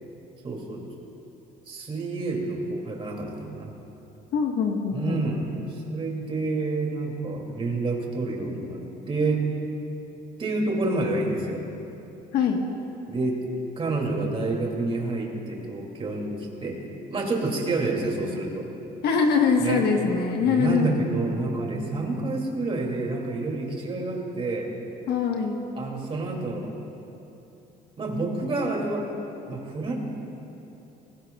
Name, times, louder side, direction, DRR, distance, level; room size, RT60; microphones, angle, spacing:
voice 1, 0.4-0.8 1.7-3.7 4.9-8.8 9.1-9.5 10.4-11.6 13.1-13.4 13.8-16.4 16.6-16.8 17.1-18.7 19.6-19.9 20.4-24.7 25.7-26.7 28.0-29.1 29.5-30.0, right 2 dB, 35° right, 0 dB, 2.4 m, -28 dB
voice 2, 4.3-5.2 12.3-12.6 19.0-21.1 25.1-25.6, left 5 dB, 70° left, 2 dB, 1.2 m, -23 dB
19.0 x 16.5 x 2.3 m, 3.0 s
cardioid pair, 110°, 17 cm